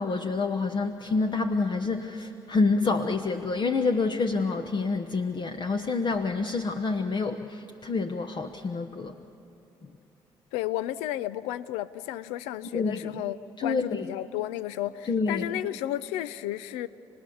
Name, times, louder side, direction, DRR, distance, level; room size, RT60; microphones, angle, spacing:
voice 1, 0.0-9.1 12.7-13.0 13.6-14.0 15.1-15.4, left 4 dB, 45° left, 6 dB, 1.0 m, -27 dB
voice 2, 10.5-16.9, left 14 dB, 90° left, 16 dB, 0.5 m, -33 dB
30.0 x 19.0 x 7.1 m, 2.9 s
supercardioid pair, 65°, 11 cm